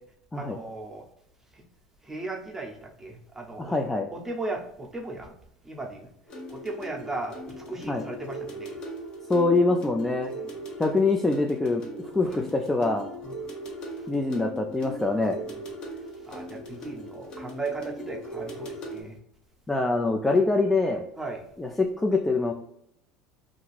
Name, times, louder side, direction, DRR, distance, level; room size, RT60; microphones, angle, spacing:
voice 1, 0.3-1.1 1.5-1.6 2.0-3.8 4.1-5.3 5.6-6.1 6.5-8.8 10.3-10.5 12.2-12.4 13.2-13.3 15.5-15.6 16.3-19.2 21.2-21.4, right 2 dB, 15° right, 0 dB, 0.8 m, -36 dB
voice 2, 3.6-4.1 7.9-8.0 9.3-10.3 10.8-13.1 14.1-15.4 19.7-21.1 21.6-22.5, left 3 dB, 10° left, 2 dB, 0.4 m, -24 dB
sound 1, 6.3-19.0, right 1 dB, 45° left, 0.9 m, -39 dB
2.5 x 2.3 x 3.2 m, 0.75 s
hypercardioid pair, 80°, 2 cm